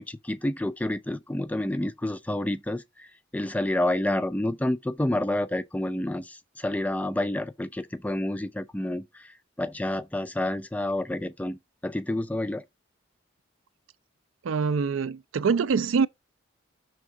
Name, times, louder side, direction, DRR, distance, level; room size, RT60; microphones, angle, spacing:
voice 1, 0.0-2.8 3.3-9.0 9.6-12.6, left 1 dB, 5° left, 0.3 m, -29 dB
voice 2, 14.4-16.1, right 5 dB, 75° right, 0.4 m, -24 dB
6.1 x 3.5 x 6.0 m
head